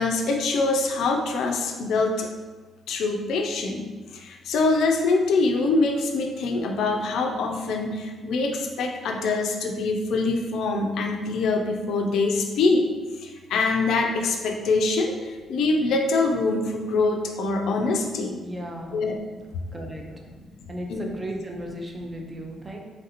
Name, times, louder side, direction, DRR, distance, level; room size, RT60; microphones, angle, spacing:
voice 1, 0.0-2.3 2.9-12.9 13.2-18.4 18.9-19.2 20.9-21.1, left 3 dB, 75° left, 3 dB, 0.3 m, -24 dB
voice 2, 18.4-19.0 19.7-20.4 20.7-22.8, right 1 dB, 25° right, 1 dB, 0.5 m, -35 dB
3.1 x 2.5 x 2.8 m, 1.3 s
cardioid pair, 90°, 0 cm